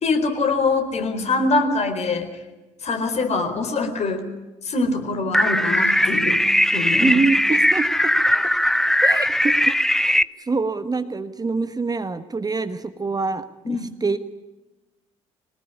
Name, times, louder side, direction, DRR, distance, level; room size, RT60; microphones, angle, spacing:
voice 1, 0.0-2.3 2.8-4.3 4.6-7.2 13.6-13.9, left 3 dB, 45° left, 6 dB, 4.3 m, -23 dB
sound 1, 5.3-10.2, equal, 5° left, 0.8 m, -19 dB
voice 2, 7.0-8.1 9.0-9.6 10.5-14.2, right 4 dB, 25° right, 11 dB, 1.3 m, -25 dB
23.5 x 19.5 x 9.9 m, 1.1 s
figure-of-eight pair, 45°, 16 cm